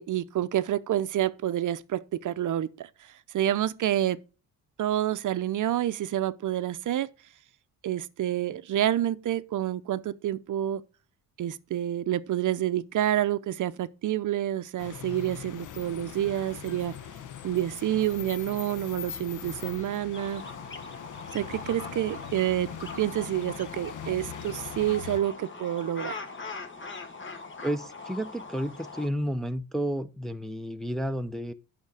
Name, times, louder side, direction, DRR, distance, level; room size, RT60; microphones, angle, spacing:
voice 1, 0.0-2.9 3.3-4.2 4.8-7.1 7.8-10.8 11.4-16.9 17.4-20.4 21.3-26.2, right 12 dB, 55° right, 0.6 m, -28 dB
sound 1, 14.8-25.2, left 9 dB, 55° left, 0.8 m, -42 dB
sound 2, 20.1-29.1, left 3 dB, 30° left, 1.3 m, -41 dB
voice 2, 27.6-31.5, equal, ahead, 0.5 m, -31 dB
8.1 x 5.9 x 4.7 m
cardioid pair, 100°, 38 cm